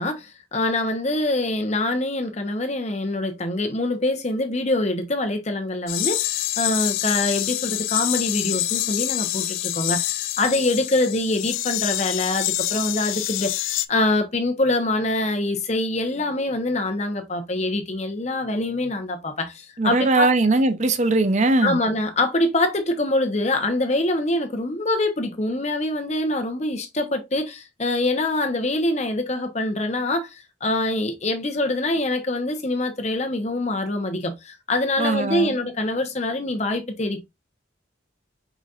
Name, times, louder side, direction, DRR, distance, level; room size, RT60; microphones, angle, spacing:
voice 1, 0.0-20.3 21.6-37.2, left 2 dB, 35° left, 0.9 m, -24 dB
sound 1, 5.9-13.9, left 15 dB, 90° left, 0.4 m, -26 dB
voice 2, 19.8-21.8 35.0-35.5, right 2 dB, 35° right, 0.6 m, -20 dB
5.0 x 4.0 x 2.4 m
head